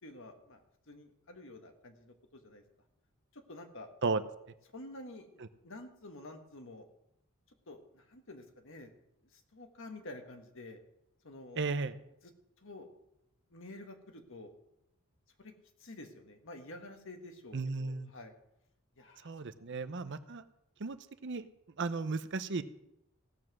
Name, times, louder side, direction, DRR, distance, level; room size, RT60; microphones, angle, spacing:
voice 1, 0.0-2.6 3.3-3.9 4.7-6.8 7.7-8.9 9.3-10.8 11.2-11.6 12.6-12.9 13.5-14.5 15.4-15.5 15.8-18.3 19.0-19.3 19.6-20.1, left 2 dB, 60° left, 5 dB, 1.6 m, -50 dB
voice 2, 11.6-12.0 17.5-18.1 19.2-20.4 20.8-21.0 21.2-21.5 21.8-22.6, right 4 dB, 55° right, 12 dB, 0.7 m, -34 dB
16.5 x 7.4 x 6.2 m, 0.83 s
head